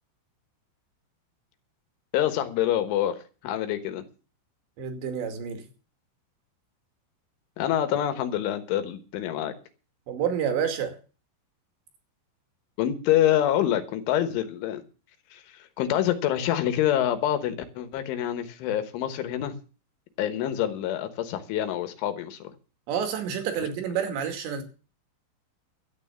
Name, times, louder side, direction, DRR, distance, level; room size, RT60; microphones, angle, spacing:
voice 1, 2.1-4.0 7.6-9.5 12.8-14.8 15.3-15.4 15.8-19.5 20.2-22.5, left 11 dB, 85° left, 3.7 m, -26 dB
voice 2, 4.8-5.6 10.1-11.0 22.9-24.6, right 8 dB, 70° right, 4.5 m, -29 dB
13.0 x 9.0 x 7.1 m
omnidirectional pair, 5.4 m